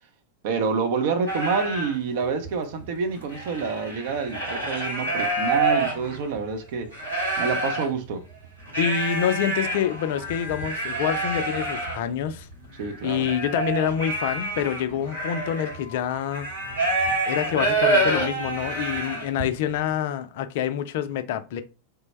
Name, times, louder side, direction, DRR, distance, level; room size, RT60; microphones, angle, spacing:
voice 1, 0.4-6.9 7.4-8.2 12.8-13.3, right 5 dB, 50° right, 0.6 m, -27 dB
sound 1, 1.3-1.9 2.4-2.5 2.8-6.4 6.9-7.9 8.7-19.5, right 2 dB, 90° right, 1.7 m, -27 dB
voice 2, 8.8-12.5 13.0-16.5 17.3-21.6, left 9 dB, 50° left, 0.3 m, -27 dB
3.2 x 2.0 x 3.2 m
figure-of-eight pair, 90°, 0 cm